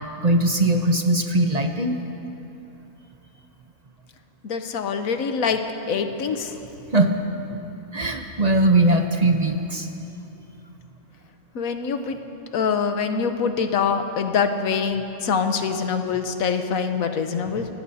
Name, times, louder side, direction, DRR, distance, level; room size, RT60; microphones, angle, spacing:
voice 1, 0.0-2.0 6.9-7.1 7.9-9.9, right 2 dB, 35° right, 4 dB, 0.7 m, -20 dB
voice 2, 4.4-5.6 5.9-6.5 11.5-12.2 12.5-17.7, left 6 dB, 75° left, 7 dB, 1.3 m, -24 dB
25.0 x 18.0 x 2.8 m, 2.9 s
omnidirectional pair, 1.5 m